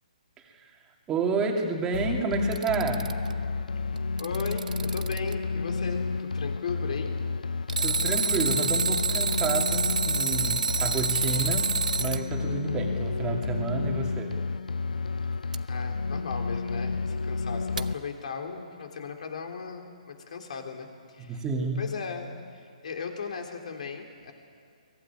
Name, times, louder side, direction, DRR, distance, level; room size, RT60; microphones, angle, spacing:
voice 1, 1.1-3.2 7.8-11.7 12.0-14.4 21.2-21.8, right 4 dB, 15° right, 1 dB, 2.5 m, -30 dB
sound 1, 1.9-17.9, left 4 dB, 90° left, 0.5 m, -31 dB
Alarm, 2.3-3.3 4.0-5.3 7.7-12.2 15.5-15.6 17.8-17.9, right 5 dB, 85° right, 0.8 m, -28 dB
voice 2, 4.2-7.1 15.6-21.4 21.8-24.3, left 5 dB, 65° left, 4 dB, 3.4 m, -37 dB
23.0 x 16.0 x 9.8 m, 2.3 s
hypercardioid pair, 145°, 4 cm